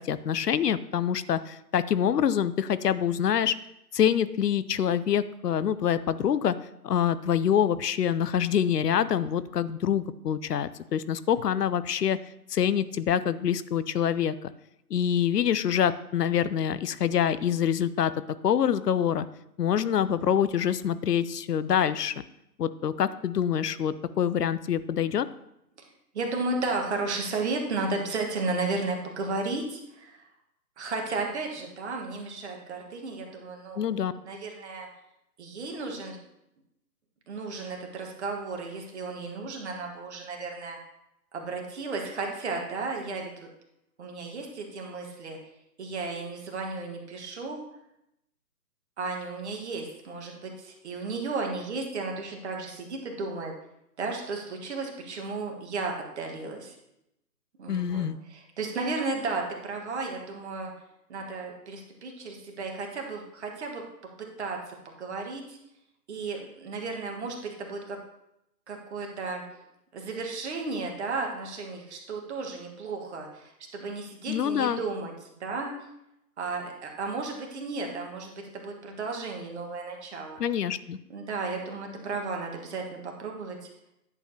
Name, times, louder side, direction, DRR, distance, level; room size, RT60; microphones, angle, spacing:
voice 1, 0.0-3.5 3.9-6.5 6.8-12.2 12.5-14.5 14.9-18.1 18.4-19.3 19.6-22.1 22.6-25.3 33.8-34.1 57.7-58.2 74.3-74.8 80.4-81.0, left 9 dB, 70° left, 15 dB, 0.6 m, -26 dB
voice 2, 26.1-30.2 30.8-33.9 34.2-34.9 35.4-36.2 37.3-40.8 41.3-43.5 44.0-45.4 45.8-47.6 49.0-53.5 54.0-56.8 57.6-60.7 61.1-63.8 64.4-65.6 66.1-68.0 68.7-69.4 69.9-75.7 76.4-80.4 81.1-83.7, right 3 dB, 40° right, 1 dB, 1.5 m, -34 dB
10.5 x 6.9 x 2.8 m, 0.82 s
figure-of-eight pair, 145°, 49 cm